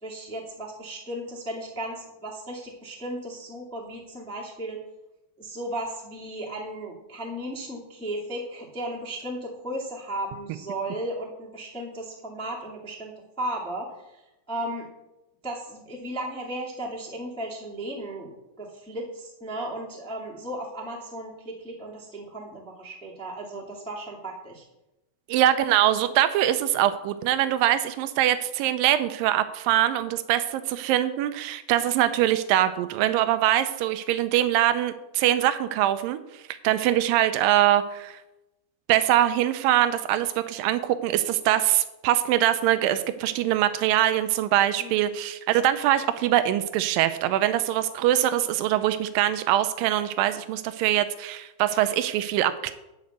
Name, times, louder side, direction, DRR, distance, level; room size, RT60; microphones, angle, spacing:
voice 1, 0.0-4.8 5.4-14.9 15.4-24.6 44.8-45.0, right 1 dB, 5° left, -3 dB, 0.7 m, -35 dB
voice 2, 25.3-38.2 38.9-52.7, right 12 dB, 85° right, 11 dB, 2.0 m, -23 dB
10.5 x 5.2 x 8.0 m, 0.95 s
omnidirectional pair, 4.6 m